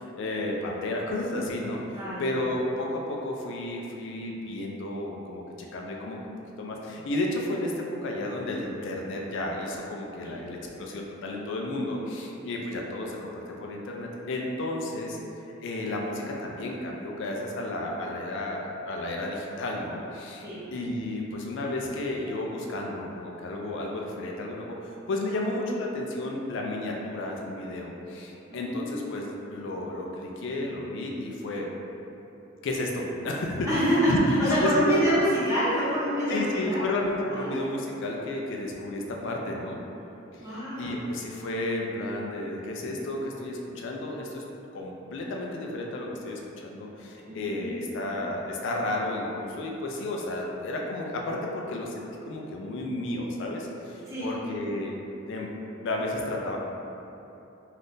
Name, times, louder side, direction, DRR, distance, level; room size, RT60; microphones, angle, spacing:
voice 1, 0.2-1.8 2.2-6.2 6.6-15.2 15.6-20.5 20.7-29.2 29.5-31.7 32.6-33.8 34.1-35.0 36.3-39.8 40.4-44.4 44.7-54.9 55.3-55.5 55.8-56.6, left 1 dB, 60° left, -1 dB, 0.3 m, -32 dB
voice 2, 28.5-29.0 33.7-36.8 37.2-37.5 40.4-40.9 47.2-47.8 54.1-54.3, equal, 15° right, -13 dB, 1.1 m, -26 dB
2.6 x 2.4 x 3.5 m, 2.9 s
head